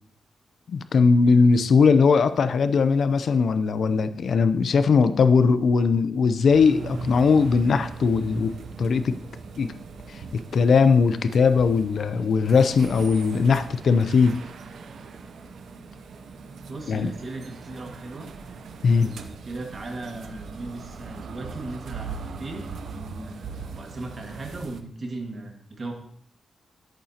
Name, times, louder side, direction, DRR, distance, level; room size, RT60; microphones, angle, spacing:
voice 1, 0.7-9.2 9.6-9.7 10.1-14.4 16.9-17.1 18.8-19.1, left 5 dB, 65° left, 11 dB, 0.5 m, -20 dB
sound 1, 6.5-24.8, right 5 dB, 85° right, 0.6 m, -40 dB
voice 2, 16.7-18.3 18.9-25.9, right 2 dB, 40° right, 2 dB, 1.8 m, -37 dB
10.5 x 8.7 x 2.9 m, 0.63 s
wide cardioid pair, 135°, 0 cm